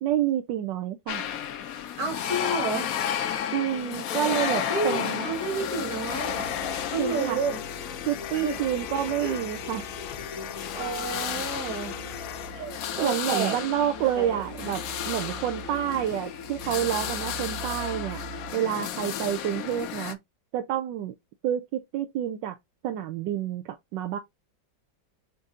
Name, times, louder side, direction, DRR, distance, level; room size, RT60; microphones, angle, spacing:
voice 1, 0.0-1.3 3.5-5.3 6.6-7.4 8.0-9.8 12.5-18.2 18.5-20.2 20.5-21.1 21.4-22.6 22.8-24.2, right 11 dB, 80° right, 1.3 m, -29 dB
sound 1, 1.1-20.1, left 9 dB, 65° left, 0.9 m, -33 dB
voice 2, 2.0-2.9 4.7-6.5 6.9-7.6 8.3-8.6 9.2-9.4 10.7-12.0 13.0-13.6 14.2-14.4, right 3 dB, 55° right, 2.1 m, -30 dB
sound 2, 5.2-18.5, right 10 dB, 25° right, 0.9 m, -45 dB
sound 3, 6.1-12.6, left 10 dB, 85° left, 1.4 m, -39 dB
5.4 x 2.7 x 3.6 m
omnidirectional pair, 2.0 m